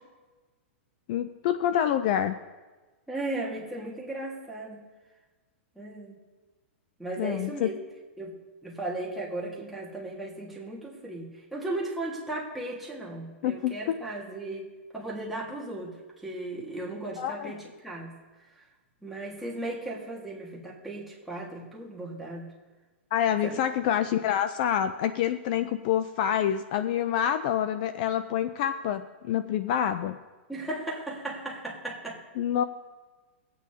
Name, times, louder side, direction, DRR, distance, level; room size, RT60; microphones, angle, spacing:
voice 1, 1.1-2.4 7.2-7.7 13.4-14.0 17.2-17.5 23.1-30.2 32.4-32.6, left 10 dB, 40° left, 11 dB, 0.4 m, -27 dB
voice 2, 3.1-4.8 5.8-6.2 7.0-7.8 8.2-8.4 8.6-14.7 14.9-16.0 16.2-18.2 18.5-18.7 19.0-22.6 23.4-23.6 24.0-24.1 30.5-32.2, right 2 dB, 5° right, -5 dB, 1.7 m, -36 dB
21.5 x 8.4 x 2.8 m, 1.3 s
hypercardioid pair, 155°, 7 cm